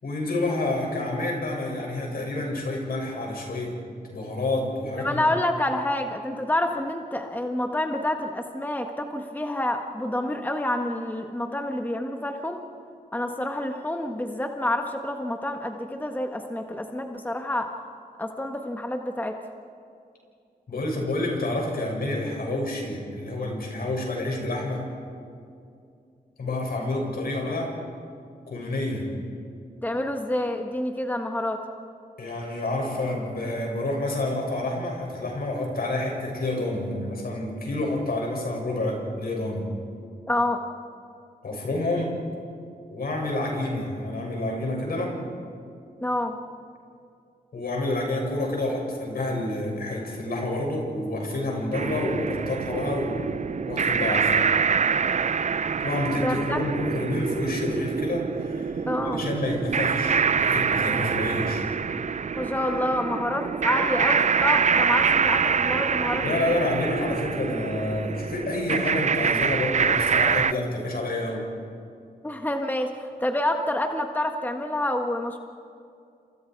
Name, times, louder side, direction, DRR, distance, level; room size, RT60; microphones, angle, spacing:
voice 1, 0.0-3.8 4.1-5.2 20.7-24.9 26.4-27.7 28.5-29.1 32.2-39.7 41.4-42.2 42.9-45.2 47.5-53.4 53.7-54.5 55.8-61.6 66.2-71.5, left 2 dB, 70° left, 0 dB, 6.9 m, -28 dB
voice 2, 5.0-12.6 13.1-17.7 18.2-19.4 29.8-31.6 40.3-40.6 46.0-46.4 56.2-56.6 58.9-59.2 62.4-66.5 72.2-75.4, left 1 dB, 10° left, 4 dB, 1.5 m, -28 dB
sound 1, 51.7-70.5, right 6 dB, 50° right, 0.5 m, -25 dB
29.0 x 28.0 x 4.7 m, 2.5 s
wide cardioid pair, 80°, 16 cm